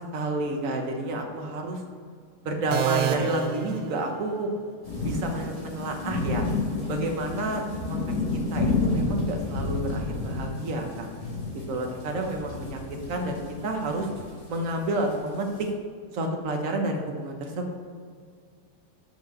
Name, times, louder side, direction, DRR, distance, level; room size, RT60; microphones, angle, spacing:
voice 1, 0.1-1.8 2.4-4.5 5.0-6.4 6.9-8.0 8.3-11.1 11.7-12.8 13.1-14.1 14.5-15.5 16.1-17.8, right 2 dB, 55° right, 3 dB, 1.3 m, -30 dB
sound 1, 2.7-4.6, right 8 dB, 75° right, 1.1 m, -29 dB
sound 2, 4.8-15.7, left 3 dB, 20° left, 1.8 m, -30 dB
6.7 x 5.2 x 6.3 m, 2.1 s
omnidirectional pair, 1.8 m